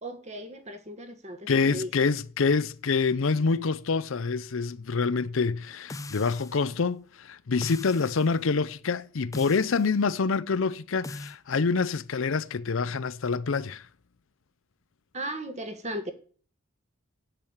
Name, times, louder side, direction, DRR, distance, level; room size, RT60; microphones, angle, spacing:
voice 1, 0.0-1.9 15.1-16.1, right 1 dB, 35° right, 1.6 m, -36 dB
voice 2, 1.5-13.9, left 4 dB, 65° left, 0.6 m, -26 dB
sound 1, 5.9-6.7 7.6-8.3 9.3-9.9 11.0-11.4, left 2 dB, 15° left, 0.5 m, -40 dB
8.8 x 8.2 x 8.9 m
head